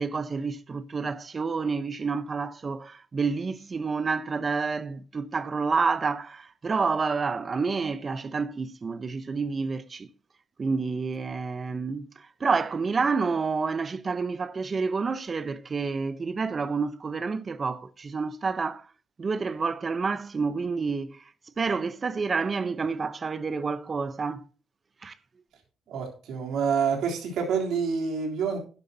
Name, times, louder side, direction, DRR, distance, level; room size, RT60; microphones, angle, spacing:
voice 1, 0.0-10.1 10.6-12.1 12.4-18.8 19.2-21.2 21.6-24.4 25.0-25.1, right 4 dB, 35° right, 0.9 m, -29 dB
voice 2, 25.9-28.6, right 6 dB, 80° right, 3.5 m, -27 dB
12.0 x 11.0 x 2.8 m
cardioid pair, 90°, 0 cm